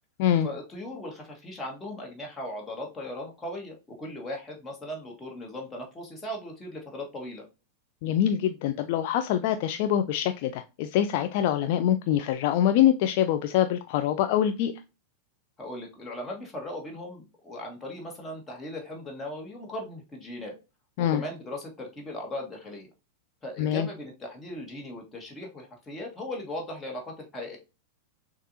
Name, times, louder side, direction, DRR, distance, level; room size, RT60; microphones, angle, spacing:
voice 1, 0.4-7.4 15.6-20.6 21.0-22.9 23.4-27.6, left 1 dB, 15° left, 0 dB, 1.5 m, -38 dB
voice 2, 8.0-14.7 21.0-21.2 23.6-23.9, left 11 dB, 50° left, 8 dB, 0.3 m, -24 dB
6.5 x 2.4 x 2.7 m, 0.28 s
figure-of-eight pair, 90°, 0 cm